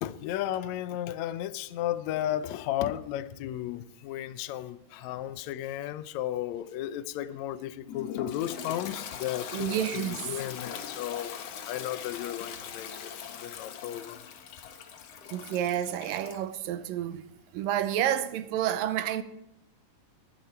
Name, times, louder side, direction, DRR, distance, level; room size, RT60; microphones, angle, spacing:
voice 1, 0.0-14.2, left 12 dB, 80° left, 1.6 m, -34 dB
Toilet flush, 7.9-16.5, left 8 dB, 65° left, 1.7 m, -41 dB
voice 2, 9.5-10.3 15.3-17.3 17.5-19.2, right 11 dB, 85° right, 2.4 m, -29 dB
21.5 x 10.0 x 4.4 m
omnidirectional pair, 4.0 m